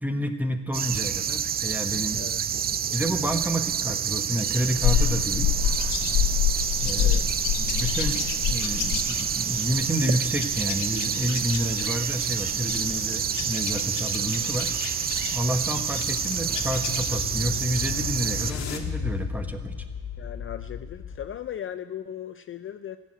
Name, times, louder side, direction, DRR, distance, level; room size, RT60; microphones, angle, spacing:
voice 1, 0.0-2.2 2.9-5.5 6.8-7.2 7.6-14.8 15.3-19.7, equal, 5° right, 6 dB, 1.3 m, -29 dB
sound 1, 0.7-18.5, right 8 dB, 30° right, 0.4 m, -28 dB
sound 2, 4.6-18.1, left 8 dB, 85° left, 1.2 m, -29 dB
voice 2, 7.0-7.4 20.2-23.0, left 10 dB, 45° left, 11 dB, 0.4 m, -37 dB
sound 3, 15.9-21.5, left 7 dB, 65° left, 1.5 m, -35 dB
14.5 x 6.7 x 8.9 m, 1.4 s
cardioid pair, 90°, 30 cm